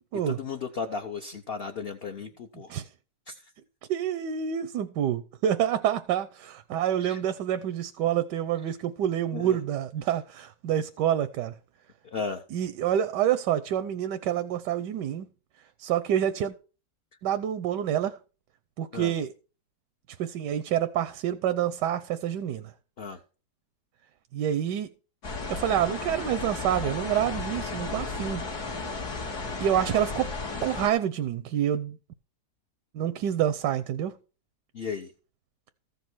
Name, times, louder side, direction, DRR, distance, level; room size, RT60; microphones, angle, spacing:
voice 1, 0.3-2.7 3.3-3.4 7.1-7.2 9.3-9.6 12.1-12.4 18.9-19.1 23.0-23.2 34.7-35.1, left 5 dB, 45° left, 0.8 m, -35 dB
voice 2, 3.9-11.5 12.5-15.3 15.8-16.5 17.2-18.2 18.8-19.3 20.2-22.7 24.3-24.9 25.5-28.5 29.6-30.3 30.6-32.0 32.9-34.1, right 10 dB, 85° right, 1.3 m, -27 dB
sound 1, 25.2-30.9, left 3 dB, 70° left, 2.4 m, -34 dB
14.5 x 5.4 x 6.1 m
omnidirectional pair, 1.8 m